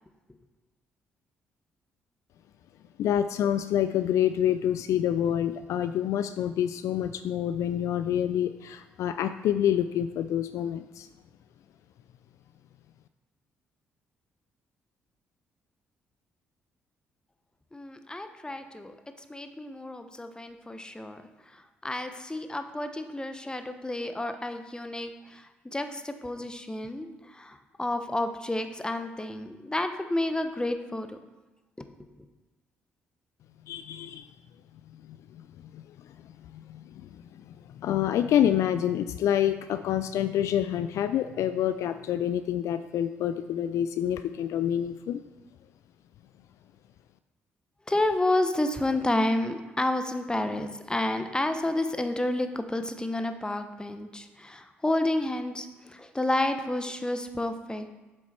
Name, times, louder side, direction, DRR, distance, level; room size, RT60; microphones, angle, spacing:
voice 1, 3.0-11.1 33.7-34.3 35.1-35.4 35.7-35.8 36.5-45.2, left 10 dB, 60° left, 11 dB, 0.4 m, -27 dB
voice 2, 17.7-18.9 19.3-21.2 21.5-31.2 47.9-57.9, left 1 dB, 15° left, 8 dB, 1.0 m, -30 dB
7.8 x 7.3 x 4.5 m, 1.2 s
hypercardioid pair, 45°, 6 cm